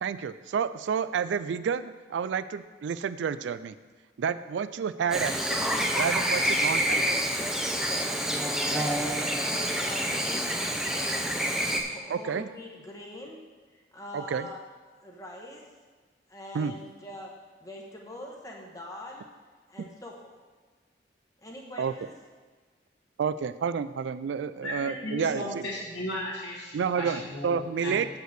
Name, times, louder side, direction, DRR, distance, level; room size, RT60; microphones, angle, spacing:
voice 1, 0.0-3.8 4.2-5.7 5.9-7.1 12.1-12.5 14.1-14.5 16.5-16.7 21.8-21.9 23.2-25.5 26.7-28.1, right 6 dB, 80° right, 14 dB, 0.3 m, -30 dB
Chirp tweet / Buzz, 5.1-11.8, equal, 5° right, 0.6 m, -27 dB
voice 2, 7.7-8.1 8.4-11.1 11.8-13.4 13.7-14.6 15.0-15.7 16.3-17.3 17.6-19.3 19.7-20.4 21.4-22.1, left 1 dB, 20° left, -1 dB, 0.9 m, -43 dB
voice 3, 24.6-28.0, equal, 70° left, -8 dB, 1.7 m, -36 dB
7.7 x 5.4 x 6.6 m, 1.4 s
head